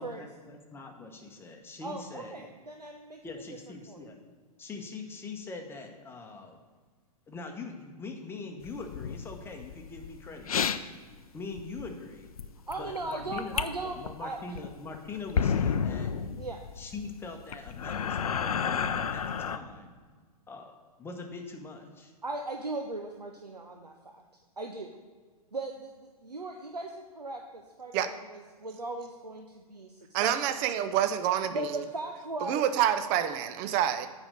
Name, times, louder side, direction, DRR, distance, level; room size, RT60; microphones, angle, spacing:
voice 1, 0.0-2.5 3.2-4.2 4.6-6.6 7.3-10.7 11.3-12.3 12.8-16.1 16.8-19.9 20.5-20.7 21.0-22.1, left 3 dB, 10° left, 3 dB, 1.0 m, -42 dB
voice 2, 1.8-3.2 3.9-4.0 12.7-14.4 16.4-16.6 22.2-24.2 24.6-25.0 25.5-30.6 31.5-32.6, right 2 dB, 90° right, 3 dB, 0.7 m, -38 dB
sound 1, 8.6-10.8 11.2-11.3 11.6-11.9 12.3-13.7 14.0-14.1 14.5-19.6, left 7 dB, 65° left, 0.5 m, -31 dB
voice 3, 30.1-31.7 32.4-34.1, right 10 dB, 30° right, 11 dB, 0.5 m, -27 dB
8.7 x 5.2 x 6.4 m, 1.5 s
figure-of-eight pair, 110°, 20 cm